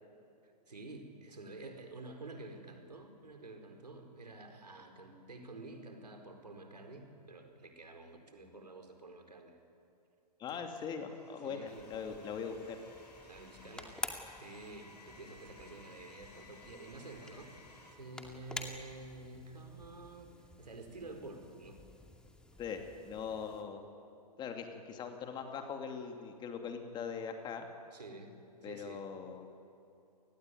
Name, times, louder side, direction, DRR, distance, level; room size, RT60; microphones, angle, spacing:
voice 1, 0.4-9.6 11.4-11.9 13.3-13.9 14.4-17.5 17.9-21.8 27.9-28.3 28.6-29.0, right 2 dB, 80° right, 4 dB, 4.7 m, -49 dB
voice 2, 10.4-12.8 22.6-23.9 24.4-27.7 28.6-29.5, left 6 dB, 20° left, 5 dB, 2.6 m, -41 dB
Domestic sounds home sounds, 10.5-17.9, left 2 dB, 80° left, 7.9 m, -58 dB
sound 1, 11.6-23.6, left 2 dB, 5° left, 2.3 m, -50 dB
29.0 x 19.5 x 9.4 m, 2.6 s
figure-of-eight pair, 120°, 21 cm